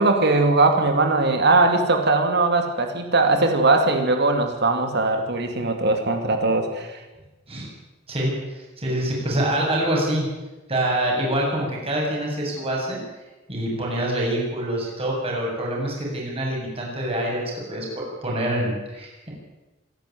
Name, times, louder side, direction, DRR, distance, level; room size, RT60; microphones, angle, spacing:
voice 1, 0.0-7.0, right 3 dB, 60° right, 5 dB, 2.5 m, -20 dB
voice 2, 8.1-10.2 10.7-13.0 13.5-17.4 17.7-19.3, right 1 dB, 30° right, -2 dB, 7.7 m, -25 dB
25.0 x 11.5 x 9.4 m, 1.1 s
head